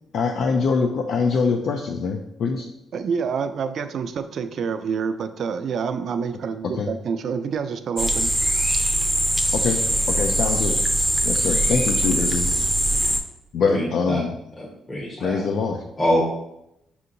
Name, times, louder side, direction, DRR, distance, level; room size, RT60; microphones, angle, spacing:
voice 1, 0.1-2.7 6.8-6.9 9.5-9.8 10.1-10.8 11.2-12.5 13.5-14.4 15.2-15.8, left 5 dB, 70° left, 2 dB, 0.3 m, -23 dB
voice 2, 2.9-8.3, right 6 dB, 60° right, 10 dB, 0.3 m, -27 dB
sound 1, 8.0-13.2, right 1 dB, 10° right, 0.5 m, -22 dB
voice 3, 13.6-14.2 14.6-15.4 16.0-16.2, equal, 25° left, -4 dB, 0.8 m, -25 dB
5.5 x 2.8 x 2.5 m, 0.82 s
cardioid pair, 90°, 0 cm